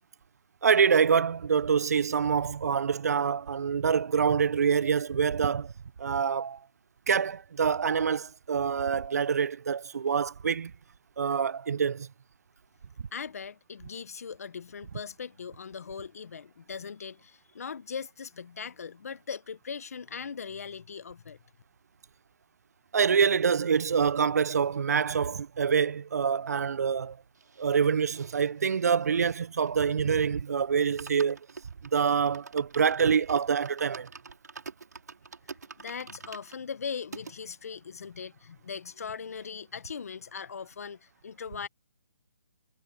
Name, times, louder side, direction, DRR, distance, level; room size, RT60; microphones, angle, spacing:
voice 1, 0.6-5.7 6.0-6.6 7.1-10.7 11.2-12.1 22.9-27.2 27.6-31.4 31.9-34.1, right 6 dB, 65° right, 0.5 m, -26 dB
voice 2, 13.1-21.4 35.8-41.7, left 6 dB, 60° left, 1.3 m, -40 dB
sound 1, 27.3-30.1 30.5-30.6 30.8-37.3 37.9-38.0 38.2-38.3 38.6-39.6 39.8-40.0, right 5 dB, 80° right, 5.1 m, -47 dB
hypercardioid pair, 165°, 9 cm